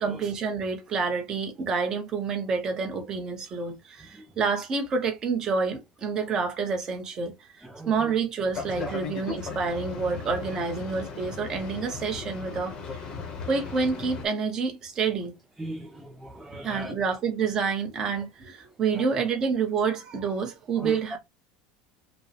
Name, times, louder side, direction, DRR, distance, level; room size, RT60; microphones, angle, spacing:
voice 1, 0.0-7.3 7.9-12.7 13.5-15.3 16.6-21.2, right 5 dB, 20° right, 0.8 m, -28 dB
Boat Water vehicle, 8.5-14.3, left 5 dB, 25° left, 0.8 m, -37 dB
voice 2, 15.6-16.9 18.9-19.0 20.8-20.9, right 1 dB, 5° right, 0.4 m, -38 dB
5.0 x 2.1 x 3.3 m
cardioid pair, 180°, 3 cm